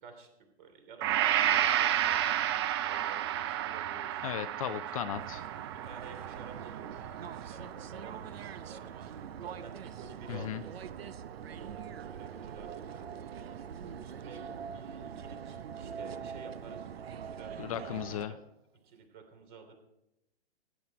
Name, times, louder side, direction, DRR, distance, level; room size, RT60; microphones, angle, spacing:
voice 1, 0.6-2.5 2.8-4.2 4.6-5.0 5.8-10.7 11.3-13.1 13.8-17.7 18.2-18.4 18.8-19.8, right 4 dB, 45° right, 6 dB, 3.1 m, -51 dB
Gong, 1.0-9.0, right 11 dB, 25° right, 0.4 m, -32 dB
voice 2, 4.2-5.4 10.3-10.6 17.6-18.3, left 11 dB, 35° left, 11 dB, 0.5 m, -36 dB
sound 1, 5.1-18.3, right 8 dB, 65° right, 0.8 m, -43 dB
16.5 x 9.2 x 4.7 m, 0.88 s
figure-of-eight pair, 125°, 33 cm